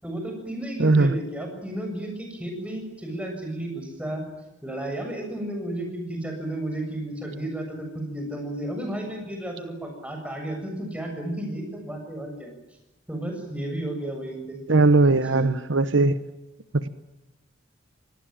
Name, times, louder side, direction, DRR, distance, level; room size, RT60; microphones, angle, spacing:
voice 1, 0.0-4.2 4.6-12.5 13.1-14.6 15.3-15.5, right 1 dB, 5° right, 3 dB, 7.3 m, -33 dB
voice 2, 0.8-1.1 14.7-16.2 16.7-16.9, right 3 dB, 65° right, 13 dB, 1.0 m, -19 dB
25.5 x 19.0 x 8.9 m, 0.98 s
head